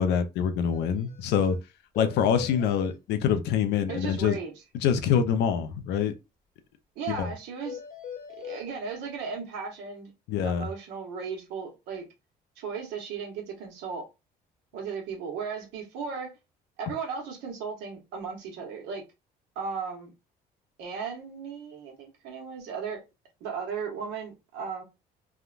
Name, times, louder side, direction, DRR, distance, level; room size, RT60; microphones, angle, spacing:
voice 1, 0.0-1.6 2.0-4.4 4.7-6.1 7.1-7.3 10.3-10.7, left 8 dB, 80° left, 0.5 m, -25 dB
sound 1, 0.7-0.8 1.1-1.2 1.5-1.6 1.9-2.9 7.6-8.6, left 8 dB, 50° left, 1.0 m, -40 dB
voice 2, 3.9-4.5 7.0-7.8 8.4-10.1 10.4-12.1 12.6-14.0 14.7-16.3 16.8-19.0 19.5-20.1 20.8-23.0 23.4-24.8, right 5 dB, 90° right, 1.2 m, -36 dB
3.4 x 2.2 x 2.4 m
cardioid pair, 110°, 17 cm